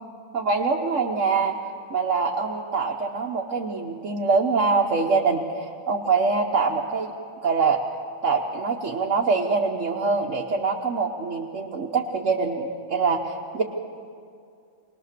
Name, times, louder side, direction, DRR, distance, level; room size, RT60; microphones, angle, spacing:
voice 1, 0.3-1.6 1.9-7.1 7.4-7.8 8.2-13.6, right 4 dB, 85° right, -2 dB, 1.4 m, -24 dB
21.5 x 20.0 x 6.7 m, 2.4 s
omnidirectional pair, 1.3 m